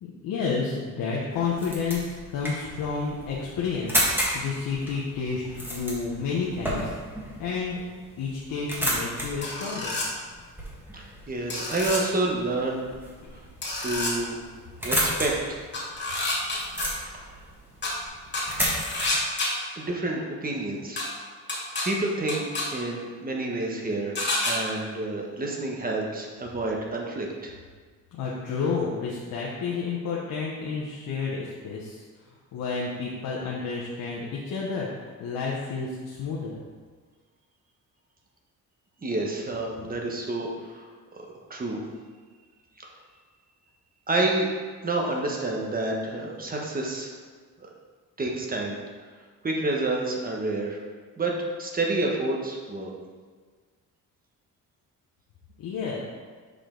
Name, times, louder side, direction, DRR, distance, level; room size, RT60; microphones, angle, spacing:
voice 1, 0.0-4.0 4.3-6.9 7.4-7.8 8.2-10.0 13.2-13.4 28.1-36.6 55.6-56.0, left 5 dB, 80° left, -4 dB, 1.0 m, -30 dB
sound 1, 1.3-19.1, equal, 5° right, 1.7 m, -33 dB
sound 2, 9.4-10.1 11.5-12.0 13.6-14.1 15.7-16.8 17.8-17.9 18.3-19.5 21.0-21.1 21.5-21.8 22.3-22.6 24.2-24.5, left 2 dB, 30° left, 2.1 m, -28 dB
voice 2, 10.9-12.9 13.8-14.3 14.8-15.6 17.1-17.4 19.8-21.1 21.8-27.5 39.0-41.8 44.1-44.5 44.8-47.1 47.6-47.7 48.2-48.8 49.4-50.8 51.2-52.9, right 2 dB, 25° right, 0 dB, 1.2 m, -29 dB
6.6 x 5.1 x 3.8 m, 1.5 s
cardioid pair, 120°, 33 cm